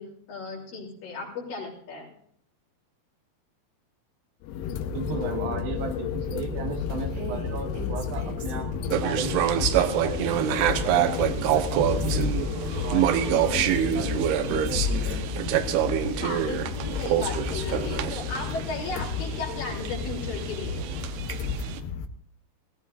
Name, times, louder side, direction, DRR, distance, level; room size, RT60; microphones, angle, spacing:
voice 1, 0.0-2.1 16.2-20.8, left 3 dB, 60° left, -2 dB, 4.6 m, -36 dB
sound 1, 4.4-22.1, left 6 dB, 85° left, 2.9 m, -31 dB
voice 2, 4.9-10.2 10.5-11.2 11.4-15.4, right 5 dB, 70° right, 4 dB, 3.0 m, -35 dB
Female speech woman speaking, 7.1-9.2 10.2-13.1 13.9-15.8, right 3 dB, 45° right, 3.8 m, -41 dB
sound 2, 8.9-21.8, right 11 dB, 85° right, 2.8 m, -27 dB
18.0 x 16.0 x 2.5 m, 0.67 s
omnidirectional pair, 4.6 m